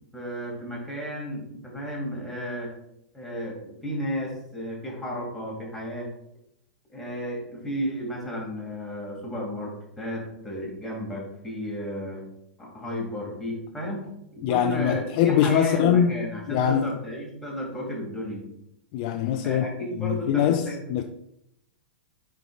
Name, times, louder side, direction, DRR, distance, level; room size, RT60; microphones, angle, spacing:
voice 1, 0.1-2.7 3.1-6.1 6.9-12.2 12.6-18.4 19.4-20.8, equal, 5° left, 2.2 m, -33 dB
voice 2, 14.4-16.9 18.9-21.0, left 9 dB, 40° left, 0.3 m, -23 dB
9.0 x 4.6 x 2.4 m
figure-of-eight pair, 100°, 5 cm